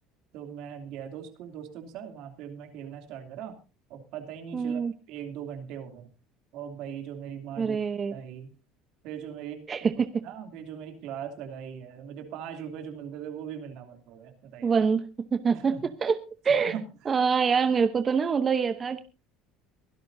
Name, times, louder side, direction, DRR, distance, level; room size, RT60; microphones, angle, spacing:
voice 1, 0.3-3.6 3.9-6.1 6.5-7.8 8.1-8.5 9.0-9.9 10.2-14.8 15.5-15.9 16.5-16.8, right 8 dB, 70° right, 5 dB, 2.8 m, -40 dB
voice 2, 4.5-4.9 7.6-8.1 9.7-10.1 14.6-16.2 16.4-16.7 17.1-19.0, right 6 dB, 30° right, 10 dB, 0.8 m, -25 dB
23.0 x 12.0 x 2.7 m, 0.32 s
supercardioid pair, 105°, 0 cm